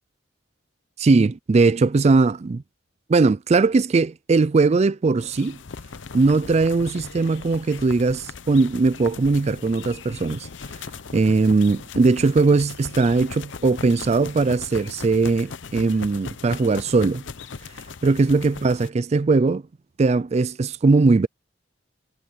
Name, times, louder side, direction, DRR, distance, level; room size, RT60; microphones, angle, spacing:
voice 1, 1.0-2.6 3.1-5.6 6.1-10.5 11.1-17.2 18.0-19.6 20.0-21.3, right 3 dB, 35° right, 0.4 m, -19 dB
sound 1, 5.2-18.9, left 5 dB, 70° left, 0.8 m, -38 dB
head